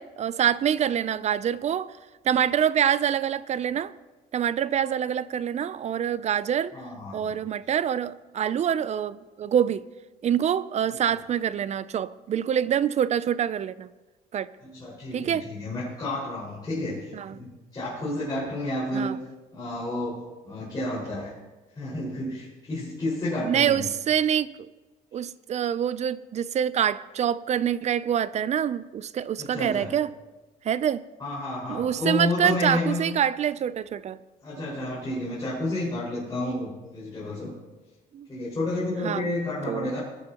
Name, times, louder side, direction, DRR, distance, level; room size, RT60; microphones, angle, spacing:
voice 1, 0.0-1.9 2.2-3.9 4.3-6.7 7.1-9.8 10.2-13.9 14.3-14.5 15.1-15.5 17.1-17.4 18.9-19.2 23.4-24.5 25.1-30.1 30.6-31.0 31.7-34.2 38.1-38.3 39.0-39.3 39.7-39.9, right 9 dB, 40° right, 17 dB, 0.5 m, -26 dB
voice 2, 6.7-7.3 10.9-11.0 14.6-19.2 19.5-21.3 21.8-23.8 29.4-29.9 31.2-33.0 34.4-37.5 38.3-40.0, left 1 dB, 25° left, -9 dB, 5.1 m, -31 dB
20.5 x 11.5 x 2.9 m, 1.2 s
cardioid pair, 110°, 17 cm